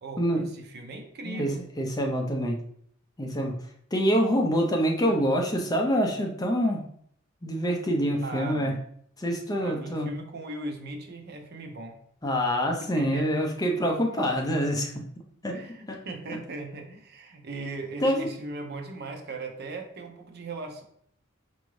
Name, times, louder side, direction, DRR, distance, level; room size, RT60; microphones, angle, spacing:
voice 1, 0.0-1.6 8.2-8.8 9.6-12.0 13.0-13.4 13.7-13.8 15.5-20.8, right 2 dB, 55° right, 3 dB, 0.6 m, -38 dB
voice 2, 1.2-2.6 3.2-3.5 3.9-6.8 7.4-8.7 9.2-10.1 12.2-14.9 15.4-15.5 18.0-18.3, equal, 20° left, 1 dB, 0.5 m, -26 dB
4.6 x 2.6 x 3.1 m, 0.65 s
head